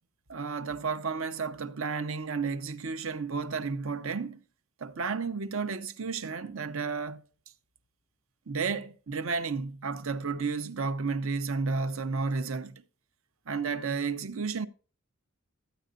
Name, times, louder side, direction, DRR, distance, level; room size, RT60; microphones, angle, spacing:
voice 1, 0.3-4.4 4.8-7.2 8.5-12.7 13.5-14.7, right 4 dB, 70° right, 0.7 m, -32 dB
14.0 x 9.1 x 2.5 m
head